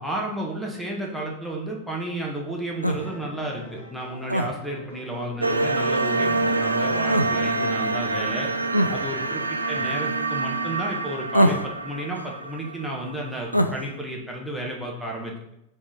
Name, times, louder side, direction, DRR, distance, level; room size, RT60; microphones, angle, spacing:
voice 1, 0.0-8.5 8.9-15.5, right 1 dB, ahead, -2 dB, 1.5 m, -32 dB
sound 1, 2.7-10.0, left 2 dB, 65° left, 2.4 m, -43 dB
sound 2, 2.8-3.0 4.3-4.5 7.1-7.3 8.7-8.9 11.3-11.7 13.5-13.8, equal, 90° left, 0.4 m, -21 dB
sound 3, 5.4-13.4, right 3 dB, 80° right, 0.4 m, -26 dB
5.2 x 3.7 x 5.1 m, 0.81 s
figure-of-eight pair, 90°, 0 cm